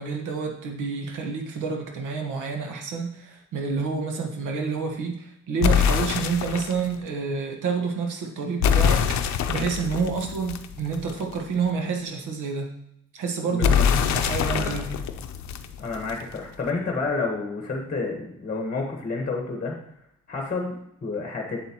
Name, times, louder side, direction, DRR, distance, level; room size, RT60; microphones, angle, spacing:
voice 1, 0.0-12.7 13.1-14.9, right 5 dB, 80° right, 3 dB, 1.3 m, -29 dB
sound 1, 5.6-6.9 8.6-11.3 13.6-16.3, left 7 dB, 65° left, 0.6 m, -24 dB
voice 2, 13.5-13.8 14.4-14.8 15.8-19.7 20.3-21.6, left 3 dB, 25° left, 1 dB, 1.3 m, -30 dB
7.8 x 7.4 x 3.0 m, 0.75 s
cardioid pair, 90°, 30 cm